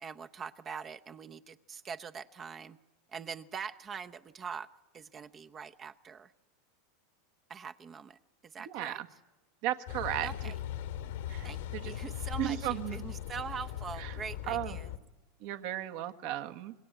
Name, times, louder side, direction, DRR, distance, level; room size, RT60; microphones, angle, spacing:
voice 1, 0.0-2.8 3.1-4.7 4.9-6.3 7.5-8.2 8.5-9.0 10.2-10.6 11.4-14.9, right 6 dB, 30° right, 8 dB, 0.8 m, -43 dB
voice 2, 8.6-9.1 9.6-10.5 11.3-11.9 12.4-13.1 14.0-14.2 14.5-14.8 15.4-16.7, right 13 dB, 60° right, 7 dB, 1.5 m, -35 dB
Car passing by / Idling / Accelerating revving vroom, 9.9-15.0, left 11 dB, 80° left, 2.3 m, -39 dB
26.0 x 20.5 x 8.0 m, 1.1 s
hypercardioid pair, 110°, 0 cm